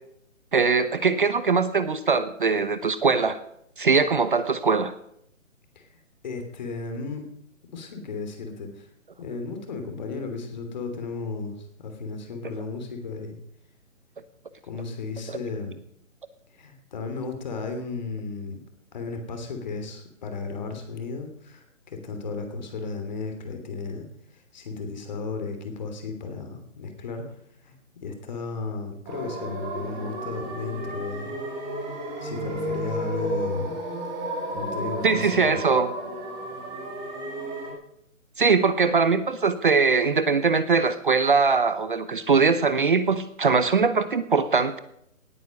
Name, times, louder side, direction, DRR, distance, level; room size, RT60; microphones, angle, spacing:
voice 1, 0.5-3.4 3.8-4.9 35.0-35.9 38.4-44.8, right 5 dB, 40° right, 13 dB, 0.8 m, -21 dB
voice 2, 5.7-7.3 7.7-8.9 9.2-13.4 14.6-15.7 16.5-18.6 18.9-24.1 24.3-27.2 27.6-27.7 28.0-31.3 32.2-33.8 34.5-35.6, left 4 dB, 35° left, 6 dB, 3.0 m, -34 dB
sound 1, 29.1-37.7, right 1 dB, 10° right, 1.8 m, -33 dB
18.5 x 9.2 x 6.4 m, 0.75 s
hypercardioid pair, 165°, 40 cm